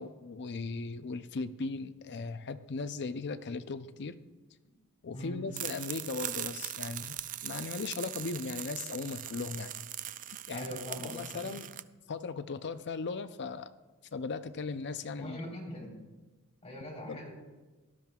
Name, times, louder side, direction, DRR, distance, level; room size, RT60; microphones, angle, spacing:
voice 1, 0.0-4.2 5.0-9.8 10.5-10.7 11.0-11.6 12.1-13.7 14.1-15.4 16.8-17.2, left 4 dB, 50° left, 12 dB, 0.5 m, -38 dB
sound 1, 5.5-11.8, right 12 dB, 35° right, 0.3 m, -40 dB
voice 2, 10.5-11.5 15.2-15.9 16.6-17.3, left 1 dB, 30° left, -3 dB, 3.7 m, -42 dB
18.0 x 12.0 x 2.4 m, 1.2 s
head